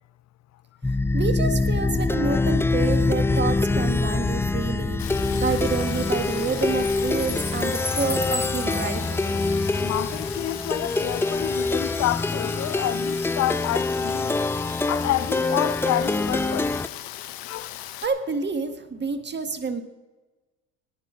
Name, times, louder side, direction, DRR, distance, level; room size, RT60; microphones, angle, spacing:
Plucked string instrument, 0.8-16.9, left 3 dB, 5° left, 0.4 m, -25 dB
voice 1, 1.1-5.1 5.3-9.3 18.0-19.8, right 4 dB, 25° right, 1.7 m, -28 dB
Rain, 5.0-18.1, left 13 dB, 65° left, 1.4 m, -38 dB
voice 2, 9.8-14.4 14.9-16.7 17.5-17.7, left 14 dB, 45° left, 0.7 m, -29 dB
18.5 x 10.0 x 5.1 m
hypercardioid pair, 80°, 38 cm